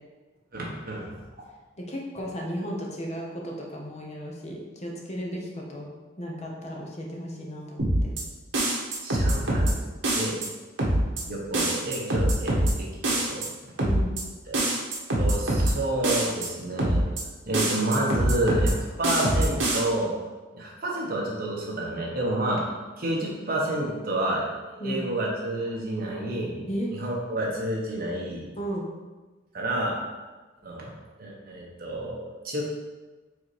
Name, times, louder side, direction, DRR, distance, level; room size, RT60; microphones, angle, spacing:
voice 1, 0.5-1.2 9.0-9.8 10.1-10.4 11.2-13.4 14.5-14.6 15.2-17.1 17.4-20.1 20.5-22.6 23.0-24.4 24.7-26.7 26.9-28.5 29.5-30.0 30.6-30.9 31.2-32.6, right 1 dB, 45° right, -3 dB, 1.3 m, -29 dB
voice 2, 1.8-8.1 13.8-14.2 24.8-25.1 26.7-26.9 28.6-28.9, equal, 35° left, -1 dB, 0.9 m, -34 dB
sound 1, 7.8-8.2 8.5-9.7 10.0-10.5 10.8-11.2 11.5-12.7 13.0-13.5 13.8-14.2 14.5-15.7 16.0-16.5 16.8-17.2 17.5-18.7 19.0-19.8, right 1 dB, 75° right, 1.4 m, -24 dB
4.9 x 4.1 x 4.9 m, 1.3 s
head